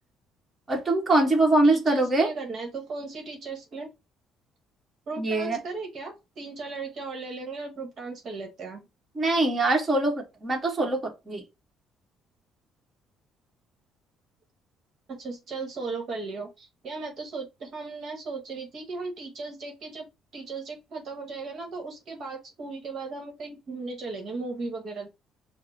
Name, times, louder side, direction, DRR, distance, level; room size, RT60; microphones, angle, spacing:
voice 1, 0.7-2.3 5.2-5.6 9.1-11.4, right 2 dB, 20° right, 1.5 m, -23 dB
voice 2, 1.6-3.9 5.1-8.8 15.1-20.1 20.3-25.1, right 3 dB, 45° right, 1.2 m, -36 dB
5.1 x 2.1 x 4.0 m
cardioid pair, 125°, 0 cm